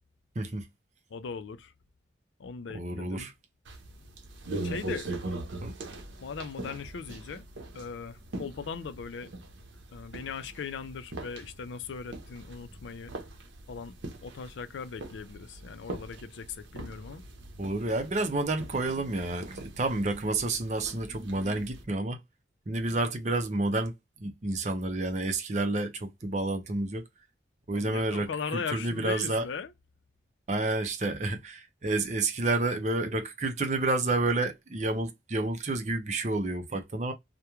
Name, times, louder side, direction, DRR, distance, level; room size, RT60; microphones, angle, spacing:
voice 1, 0.4-0.7 2.7-3.3 5.6-5.7 17.6-22.2 22.7-23.9 24.2-27.1 27.7-29.4 30.5-37.1, right 2 dB, 40° right, 0.5 m, -30 dB
voice 2, 1.1-1.7 2.4-3.3 4.6-5.1 6.2-7.4 7.7-9.3 9.9-13.1 13.7-17.2 27.7-29.7, left 5 dB, 85° left, 0.4 m, -39 dB
sound 1, 3.7-21.8, right 2 dB, 90° right, 0.7 m, -42 dB
3.0 x 2.1 x 2.3 m
head